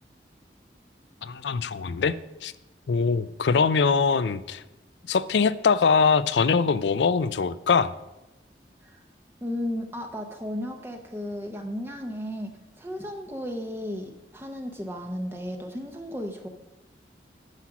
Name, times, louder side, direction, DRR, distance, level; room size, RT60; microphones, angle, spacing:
voice 1, 1.2-2.1 2.4-2.5 2.9-4.6 5.1-7.9, left 5 dB, 85° left, 16 dB, 0.4 m, -22 dB
voice 2, 9.4-12.5 12.8-16.5, left 1 dB, 15° right, 4 dB, 0.7 m, -34 dB
9.8 x 6.0 x 5.9 m, 1.0 s
head